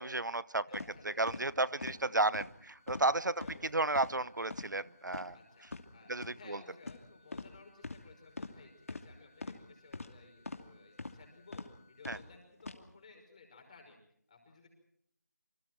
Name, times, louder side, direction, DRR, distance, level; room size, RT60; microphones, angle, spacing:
voice 1, 0.0-0.8 1.2-3.4 3.7-5.4 6.1-6.6 12.1-12.2, right 2 dB, 90° right, 20 dB, 0.9 m, -33 dB
sound 1, 0.7-0.9 1.3-1.4 1.8-2.0 2.3-2.5 2.9-3.1 3.4-3.6 3.9-4.1 4.5-4.7 5.1-5.2 5.6-5.8 6.2-6.3 6.8-7.0 7.3-7.5 7.8-8.0 8.4-8.5 8.9-9.0 9.4-9.6 9.9-10.1 10.4-10.6 11.0-11.2 11.5-11.7 12.0-12.2 12.6-12.8, left 3 dB, 50° left, 2.6 m, -42 dB
voice 2, 0.7-2.0 3.4-3.9 5.3-11.6 11.9-14.0 14.3-14.7, left 4 dB, 25° left, 3 dB, 5.5 m, -58 dB
sound 2, 0.9-12.3, left 3 dB, 10° right, 3.0 m, -68 dB
27.0 x 25.5 x 4.6 m, 0.70 s
figure-of-eight pair, 170°, 10 cm